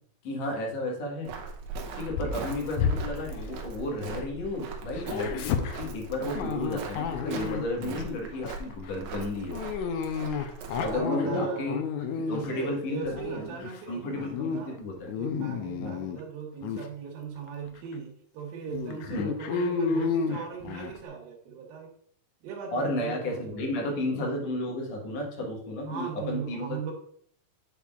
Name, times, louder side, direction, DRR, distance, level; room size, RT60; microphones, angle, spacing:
voice 1, 0.2-1.3 2.0-9.6 10.8-11.8 12.3-13.5 13.9-15.1 15.8-16.0 19.1-19.3 22.7-26.8, left 1 dB, 55° left, -1 dB, 2.4 m, -33 dB
Walk footsteps, 1.2-11.0, right 4 dB, 75° right, 2.0 m, -40 dB
Dog, 2.1-4.4 4.7-8.1 8.4-8.7 9.5-12.6 13.1-13.8 14.2-14.6 14.9-16.2 16.6-16.9 17.5-17.6 17.9-18.0 18.7-21.0, left 6 dB, 90° left, 1.6 m, -31 dB
voice 2, 10.8-11.8 12.3-14.7 15.1-21.9 22.4-23.8 25.9-26.9, right 6 dB, 90° right, 0 dB, 2.9 m, -38 dB
8.2 x 5.8 x 2.4 m, 0.62 s
omnidirectional pair, 4.0 m